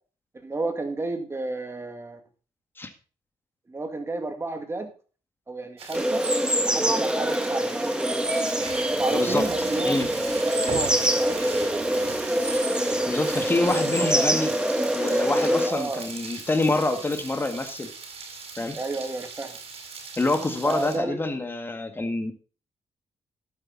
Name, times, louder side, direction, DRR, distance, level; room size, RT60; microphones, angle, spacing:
voice 1, 0.4-2.2 3.7-4.9 5.5-6.2 6.6-7.7 9.0-10.2 10.4-11.5 15.6-16.1 18.8-19.6 20.6-21.2, right 2 dB, 25° right, 6 dB, 2.3 m, -31 dB
sound 1, 5.8-21.0, right 4 dB, 65° right, 4.5 m, -39 dB
sound 2, 5.9-15.7, right 1 dB, 10° right, 1.6 m, -24 dB
voice 2, 9.1-10.1 13.1-14.5 14.9-17.9 18.6-18.8 20.2-22.3, left 2 dB, 20° left, 7 dB, 1.9 m, -26 dB
12.0 x 8.9 x 4.1 m, 0.37 s
cardioid pair, 105°, 11 cm